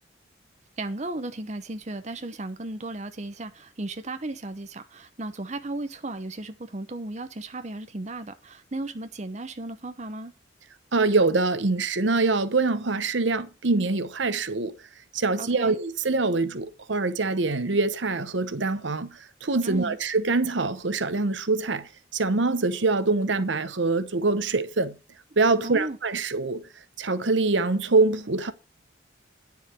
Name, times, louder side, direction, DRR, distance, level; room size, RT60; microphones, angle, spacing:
voice 1, 0.8-10.3 15.4-15.8 19.6-20.0 25.6-26.0, right 2 dB, 35° right, 0.9 m, -35 dB
voice 2, 10.9-14.7 15.1-25.0 25.4-26.7 27.0-28.5, right 3 dB, 75° right, 0.9 m, -24 dB
9.8 x 7.1 x 4.6 m
head